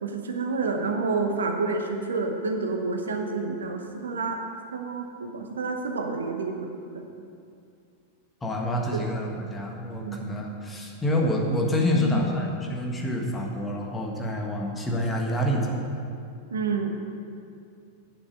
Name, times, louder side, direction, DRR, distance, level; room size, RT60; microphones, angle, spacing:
voice 1, 0.0-4.4 4.7-7.1 8.9-9.1 10.0-10.2 11.9-12.2 16.5-16.9, right 4 dB, 70° right, 4 dB, 0.9 m, -29 dB
voice 2, 8.4-15.8, left 1 dB, 15° left, 0 dB, 1.5 m, -27 dB
8.4 x 7.1 x 7.3 m, 2.5 s
figure-of-eight pair, 90°, 0 cm